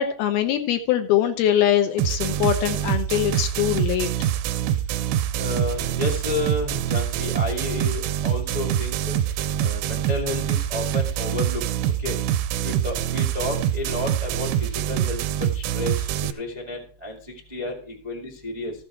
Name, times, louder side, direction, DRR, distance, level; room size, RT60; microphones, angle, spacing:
voice 1, 0.0-4.1, left 11 dB, 75° left, 7 dB, 2.5 m, -22 dB
sound 1, 2.0-16.3, right 10 dB, 80° right, 2.7 m, -25 dB
voice 2, 5.4-9.2 9.6-11.6 12.0-12.1 12.6-16.1 16.4-18.7, left 2 dB, 35° right, -1 dB, 0.6 m, -31 dB
14.5 x 7.6 x 4.6 m, 0.44 s
omnidirectional pair, 5.0 m